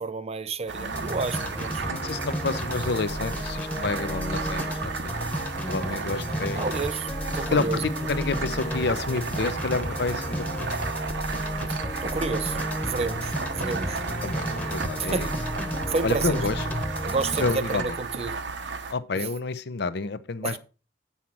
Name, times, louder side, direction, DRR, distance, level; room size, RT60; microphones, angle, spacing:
voice 1, 0.0-1.8 6.5-7.1 7.3-7.8 12.0-12.6 12.8-14.0 15.0-15.3 15.9-16.4 17.0-18.4 19.1-19.3 20.4-20.6, right 4 dB, 35° right, 0.6 m, -30 dB
voice 2, 0.7-1.2 1.7-4.9 5.7-6.8 7.5-10.7 14.2-15.3 16.0-16.7 17.4-18.0 18.9-20.6, left 3 dB, 65° left, 0.7 m, -29 dB
sound 1, 0.7-18.9, right 4 dB, 75° right, 0.9 m, -34 dB
sound 2, 0.9-17.6, equal, 10° left, 1.1 m, -32 dB
8.6 x 5.7 x 4.5 m
head